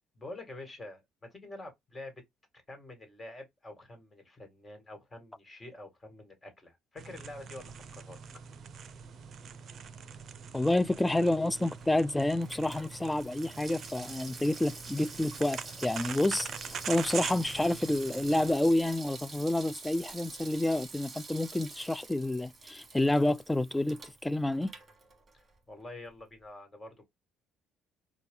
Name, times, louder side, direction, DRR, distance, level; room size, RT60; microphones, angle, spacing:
voice 1, 0.2-1.0 1.3-2.1 2.7-8.2 25.3-27.0, left 2 dB, 25° left, 1.9 m, -47 dB
sound 1, 7.0-18.5, right 7 dB, 55° right, 0.5 m, -43 dB
voice 2, 10.5-24.7, left 1 dB, 10° left, 0.3 m, -29 dB
Water tap faucet / Sink (filling or washing), 11.3-25.6 25.9-26.0, right 3 dB, 35° right, 1.3 m, -47 dB
4.0 x 2.4 x 3.6 m
hypercardioid pair, 65°, 0 cm